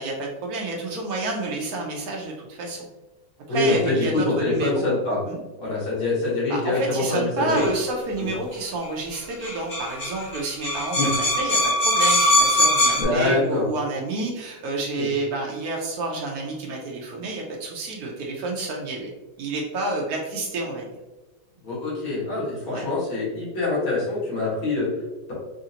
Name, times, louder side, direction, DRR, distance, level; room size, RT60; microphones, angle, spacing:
voice 1, 0.0-2.9 3.5-4.9 5.3-5.4 6.5-19.1 19.4-21.0 22.7-22.8, right 2 dB, 90° right, -1 dB, 0.8 m, -29 dB
voice 2, 3.5-5.2 5.6-7.7 10.9-11.1 13.0-13.6 15.0-15.1 21.6-24.9, left 2 dB, 75° left, -8 dB, 2.3 m, -24 dB
sound 1, 7.5-7.7 8.8-8.9 9.1-9.2 9.4-13.0, left 1 dB, 35° left, 1.8 m, -21 dB
4.9 x 2.5 x 2.7 m, 1.1 s
omnidirectional pair, 2.3 m